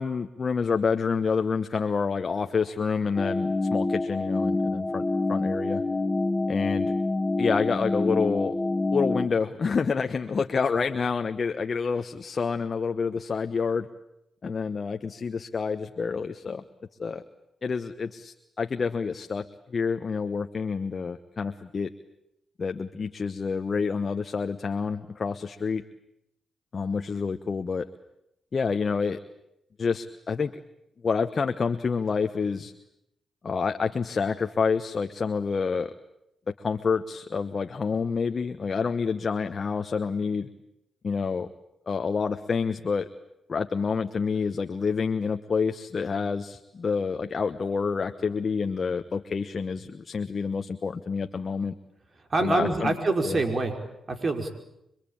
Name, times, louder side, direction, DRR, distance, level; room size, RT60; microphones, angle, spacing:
voice 1, 0.0-5.0 5.3-5.8 6.5-6.9 7.4-8.5 8.9-13.9 14.4-16.6 17.0-17.2 17.6-21.9 22.6-25.8 26.7-27.9 28.5-29.2 29.8-30.6 31.0-32.7 33.4-35.9 36.5-40.5 41.0-41.5 41.9-43.1 43.5-51.7 52.4-53.0 53.2-53.4, left 5 dB, 50° left, 8 dB, 1.1 m, -28 dB
sound 1, 3.2-9.3, left 2 dB, 30° left, 1.8 m, -27 dB
voice 2, 52.3-53.7 54.1-54.5, right 3 dB, 50° right, 5 dB, 5.0 m, -25 dB
26.0 x 23.0 x 8.8 m, 0.84 s
supercardioid pair, 50°, 0 cm